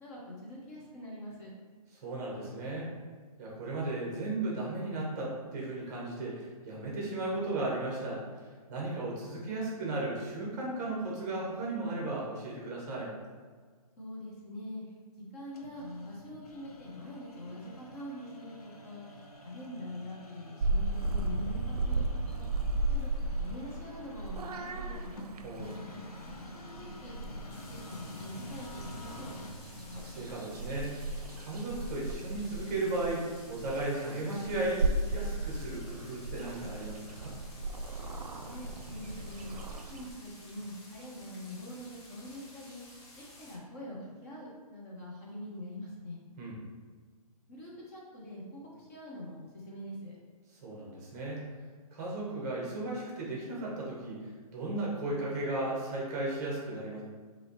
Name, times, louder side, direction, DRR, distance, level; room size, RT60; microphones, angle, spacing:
voice 1, 0.0-1.5 14.0-14.8 15.3-19.2 19.4-22.5 22.9-25.2 26.5-27.2 27.4-29.3 38.5-39.5 39.9-46.2 47.5-50.2, left 1 dB, 25° left, -5 dB, 0.8 m, -44 dB
voice 2, 2.0-2.9 3.4-13.1 25.4-25.8 29.9-30.9 31.4-37.3 46.4-46.6 50.5-51.4 51.9-57.0, right 2 dB, 25° right, -4 dB, 1.0 m, -35 dB
sound 1, 15.5-30.5, left 1 dB, 70° left, 0.8 m, -48 dB
Purr / Meow, 20.6-40.1, right 2 dB, 75° right, 0.5 m, -36 dB
sound 2, 27.5-43.6, left 1 dB, 45° left, 1.2 m, -54 dB
6.0 x 2.7 x 3.1 m, 1.5 s
hypercardioid pair, 160°, 20 cm